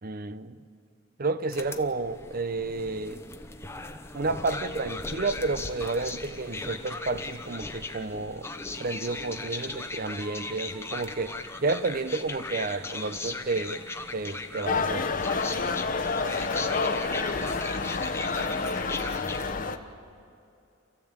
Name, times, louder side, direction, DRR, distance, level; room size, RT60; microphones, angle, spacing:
voice 1, 0.0-0.6 1.2-3.2 4.1-8.5 8.8-11.3 11.6-13.8 14.1-15.2, right 3 dB, 45° right, 13 dB, 0.8 m, -31 dB
sound 1, 1.5-19.5, left 3 dB, 15° left, 1.0 m, -38 dB
sound 2, 14.7-19.8, left 4 dB, 45° left, 1.1 m, -29 dB
voice 2, 16.2-19.0, right 1 dB, 80° right, -1 dB, 4.4 m, -45 dB
28.0 x 15.0 x 8.8 m, 2.6 s
head